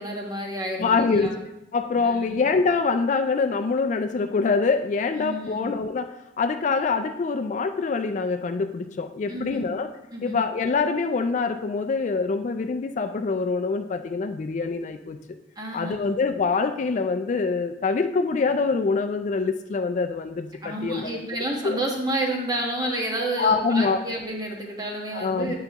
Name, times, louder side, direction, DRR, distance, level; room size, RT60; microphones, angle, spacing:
voice 1, 0.0-1.4 1.9-2.4 5.1-5.7 9.3-9.7 10.1-10.4 15.6-16.1 20.6-25.5, right 1 dB, 20° right, -1 dB, 1.2 m, -30 dB
voice 2, 0.8-1.4 1.7-9.9 10.2-15.2 15.7-21.2 21.6-21.8 23.4-24.0 25.1-25.5, left 4 dB, 40° left, 7 dB, 0.3 m, -25 dB
8.9 x 5.7 x 2.9 m, 0.91 s
head